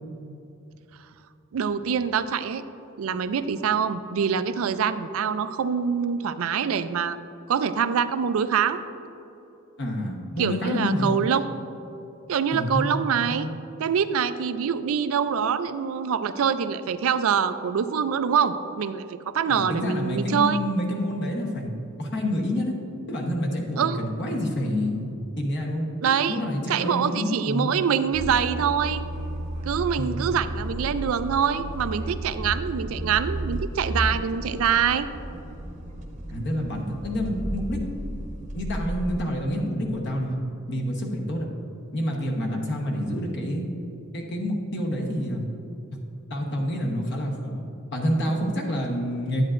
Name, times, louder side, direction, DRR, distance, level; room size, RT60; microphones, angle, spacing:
voice 1, 1.5-2.6 3.0-7.2 7.5-8.8 10.4-11.6 12.3-13.5 13.8-20.6 23.8-24.0 26.0-26.4 26.7-29.0 29.6-35.1, right 7 dB, 75° right, 12 dB, 0.4 m, -25 dB
voice 2, 9.8-11.1 12.5-12.9 13.2-13.6 19.5-21.7 22.0-22.8 23.1-27.8 30.0-30.3 36.3-37.8 38.5-40.4 40.7-41.5 41.9-43.7 44.1-45.4 46.3-47.6 47.9-49.4, equal, 55° left, -1 dB, 1.0 m, -28 dB
sound 1, 28.1-39.2, right 1 dB, 35° right, 0.8 m, -33 dB
10.5 x 8.7 x 2.5 m, 2.9 s
head